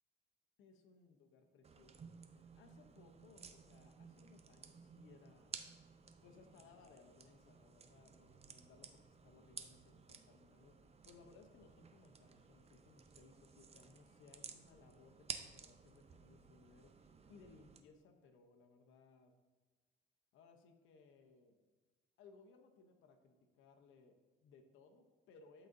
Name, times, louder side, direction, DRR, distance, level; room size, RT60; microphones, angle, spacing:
voice 1, 0.6-5.5 6.2-19.3 20.3-21.6 22.2-25.7, left 4 dB, 80° left, 5 dB, 0.7 m, -64 dB
sound 1, 1.6-17.8, right 5 dB, 30° right, 0.5 m, -55 dB
11.5 x 3.9 x 2.6 m, 1.3 s
cardioid pair, 90°, 20 cm